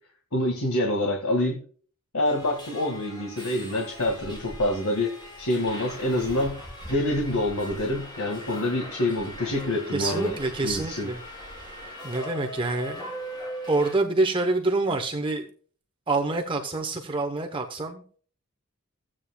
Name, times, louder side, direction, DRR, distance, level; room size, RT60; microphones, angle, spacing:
voice 1, 0.3-1.6 2.1-6.6 6.9-10.3 10.6-11.1, left 1 dB, 85° left, 0 dB, 1.8 m, -26 dB
Subway metro underground, 2.2-13.9, equal, 20° left, 5.2 m, -40 dB
voice 2, 9.9-11.2 12.0-13.1 13.7-15.5 16.1-18.2, right 2 dB, 25° right, 4 dB, 0.9 m, -26 dB
15.0 x 8.7 x 2.3 m, 0.44 s
head